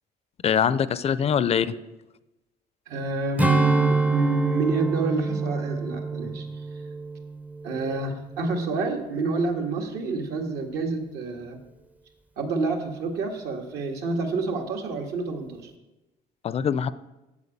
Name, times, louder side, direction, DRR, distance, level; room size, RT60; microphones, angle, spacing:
voice 1, 0.4-1.7 16.4-16.9, left 8 dB, 35° left, 16 dB, 0.5 m, -23 dB
voice 2, 2.9-6.5 7.6-11.6 12.4-15.7, right 3 dB, 75° right, 2 dB, 1.9 m, -28 dB
Strum, 3.4-8.1 8.5-8.7, right 3 dB, 10° right, 0.6 m, -26 dB
8.3 x 7.5 x 8.6 m, 1.0 s
cardioid pair, 110°, 17 cm